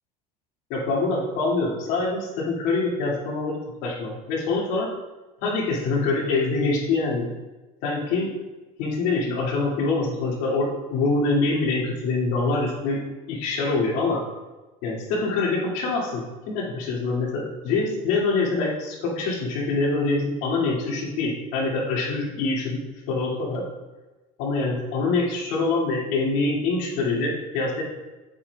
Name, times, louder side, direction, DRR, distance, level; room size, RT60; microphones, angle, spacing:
voice 1, 0.7-4.9 5.4-7.3 7.8-8.3 8.8-13.0 13.3-14.2 14.8-22.8 23.1-23.6 24.4-27.8, left 3 dB, 75° left, -4 dB, 2.5 m, -25 dB
8.6 x 8.5 x 2.4 m, 1.1 s
supercardioid pair, 110°, 18 cm